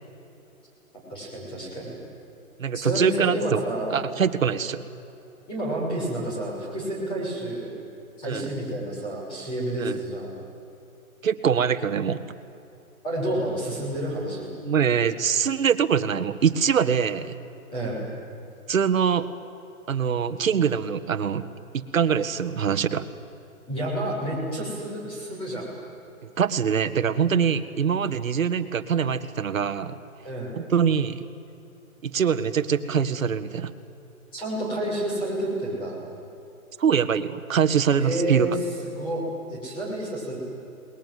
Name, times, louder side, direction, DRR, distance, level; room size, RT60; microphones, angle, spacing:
voice 1, 1.1-1.9 2.7-4.0 5.5-7.7 8.2-10.3 13.0-14.5 17.7-18.1 23.7-25.7 30.2-30.6 34.3-36.0 38.0-38.6 38.8-39.2 39.5-40.4, right 1 dB, 10° left, -4 dB, 6.4 m, -29 dB
voice 2, 2.6-3.6 3.9-4.8 8.3-8.5 9.8-10.0 11.2-12.2 14.7-17.4 18.7-19.3 19.9-21.5 21.7-23.1 26.4-30.0 30.6-31.3 32.0-33.7 36.8-38.5, right 7 dB, 65° right, 11 dB, 1.8 m, -23 dB
29.5 x 21.5 x 9.5 m, 2.8 s
hypercardioid pair, 165°, 43 cm